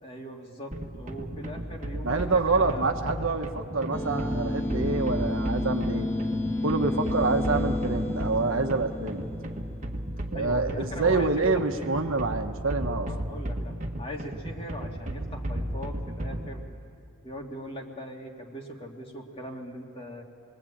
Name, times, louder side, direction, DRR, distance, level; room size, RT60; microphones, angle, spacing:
voice 1, 0.0-2.9 10.3-11.3 11.8-11.9 13.1-16.6 17.2-20.2, equal, 25° left, 0 dB, 2.6 m, -40 dB
sound 1, 0.7-16.6, right 1 dB, 35° right, 1.7 m, -34 dB
voice 2, 2.0-6.1 6.6-9.2 10.3-13.1, right 3 dB, 70° right, 6 dB, 1.3 m, -27 dB
sound 2, 3.9-10.5, left 1 dB, 10° left, 1.4 m, -31 dB
27.5 x 21.5 x 8.8 m, 2.4 s
head